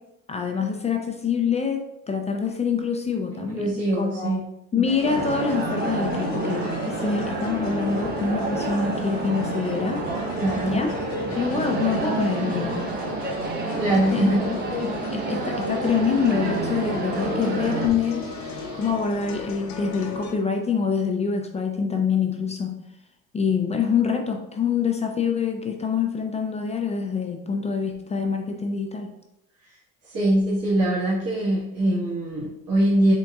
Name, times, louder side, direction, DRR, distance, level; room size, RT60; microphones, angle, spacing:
voice 1, 0.3-3.7 4.0-4.3 4.7-10.0 10.7-10.9 11.4-12.9 14.1-18.2 18.8-22.7 23.3-29.1, left 6 dB, 20° left, 3 dB, 0.4 m, -25 dB
voice 2, 3.3-4.5 10.4-10.8 13.7-14.6 30.0-33.1, right 1 dB, 50° right, -9 dB, 1.3 m, -23 dB
sound 1, 4.8-20.4, left 4 dB, 60° left, 0.7 m, -36 dB
sound 2, 5.0-17.9, right 3 dB, 30° right, 0.7 m, -29 dB
Guitar, 11.3-18.9, right 4 dB, 70° right, 0.7 m, -41 dB
4.0 x 3.6 x 2.3 m, 0.86 s
cardioid pair, 110°, 32 cm